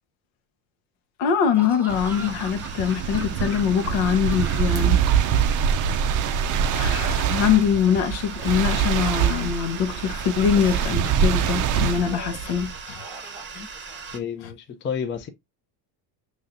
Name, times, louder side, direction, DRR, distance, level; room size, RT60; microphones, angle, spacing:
voice 1, 1.2-5.0 5.9-6.3 6.7-13.0, left 8 dB, 70° left, 0.9 m, -23 dB
Laughter / Cough, 1.5-4.9 5.1-6.0 6.7-7.8 8.4-9.6 10.3-11.3 11.9-12.5 12.9-14.2, right 1 dB, 5° right, 1.2 m, -41 dB
sound 1, 1.9-14.2, right 5 dB, 25° right, 0.8 m, -41 dB
sound 2, 1.9-12.8, right 8 dB, 40° right, 0.5 m, -24 dB
voice 2, 14.1-15.3, left 7 dB, 25° left, 0.5 m, -31 dB
5.4 x 3.3 x 2.5 m
cardioid pair, 130°, 48 cm